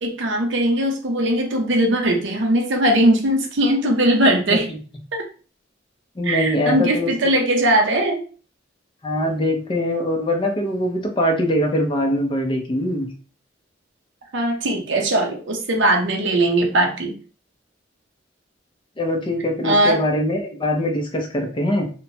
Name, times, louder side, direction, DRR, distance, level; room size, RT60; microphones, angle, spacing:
voice 1, 0.0-4.7 5.1-5.2 6.2-8.2 14.3-17.1 19.6-20.0, right 1 dB, 70° right, 2 dB, 0.6 m, -19 dB
voice 2, 6.2-7.3 9.0-13.1 19.0-21.9, left 1 dB, 25° left, 3 dB, 0.5 m, -22 dB
2.9 x 2.1 x 2.7 m, 0.38 s
head